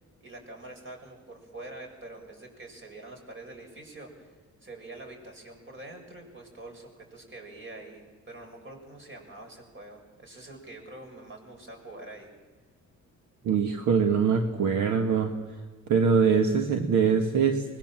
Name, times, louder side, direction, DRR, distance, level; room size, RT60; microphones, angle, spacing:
voice 1, 0.2-4.3 4.6-12.3, right 2 dB, 40° right, 2 dB, 6.6 m, -45 dB
voice 2, 13.4-15.3 15.9-17.8, right 6 dB, 70° right, 5 dB, 1.7 m, -23 dB
24.0 x 21.0 x 7.5 m, 1.3 s
cardioid pair, 90°, 30 cm